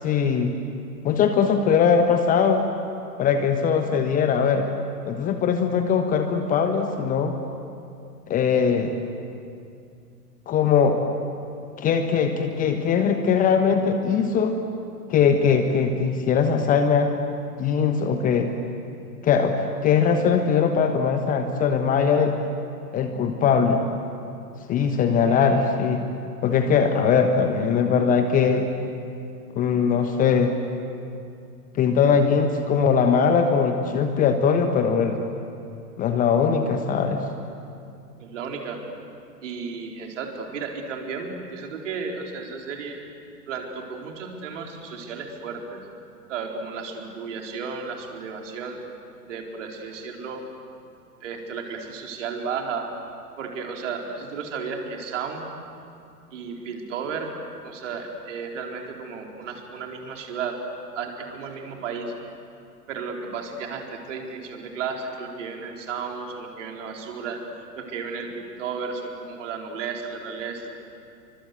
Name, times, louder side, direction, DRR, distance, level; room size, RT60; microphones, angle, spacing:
voice 1, 0.0-0.5 1.0-2.6 3.2-4.7 5.1-7.3 8.3-8.9 10.5-11.0 11.8-14.5 15.1-17.1 17.6-18.5 19.2-19.5 19.8-22.3 22.9-23.9 24.7-26.0 26.4-28.7 29.6-30.6 31.7-35.2 36.0-37.2, left 6 dB, 15° left, 6 dB, 1.2 m, -21 dB
voice 2, 25.2-25.8 38.2-38.8 39.4-43.0 43.5-45.8 46.3-48.8 49.2-50.4 51.2-52.9 53.4-55.5 56.3-57.3 57.6-60.6 60.9-62.1 62.9-70.7, right 5 dB, 50° right, 2 dB, 4.1 m, -33 dB
29.5 x 24.5 x 8.0 m, 2.5 s
figure-of-eight pair, 110°, 48 cm